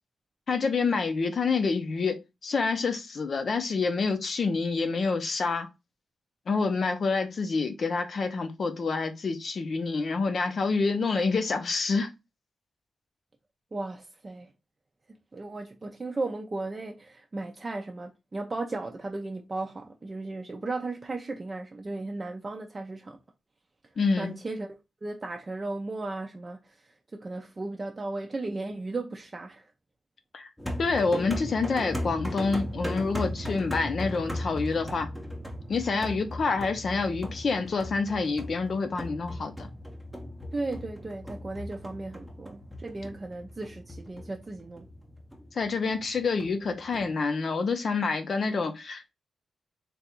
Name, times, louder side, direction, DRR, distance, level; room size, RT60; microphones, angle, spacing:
voice 1, 0.5-5.7 6.5-12.1 24.0-24.3 30.3-30.5 30.8-35.1 35.7-39.7 45.6-49.1, left 4 dB, 55° left, 0.7 m, -27 dB
voice 2, 13.7-14.5 15.3-23.2 24.2-29.7 40.5-44.9, right 2 dB, 30° right, 0.5 m, -36 dB
sound 1, 30.6-47.1, left 1 dB, 5° left, 0.8 m, -37 dB
3.4 x 2.5 x 4.3 m
wide cardioid pair, 120°, 0 cm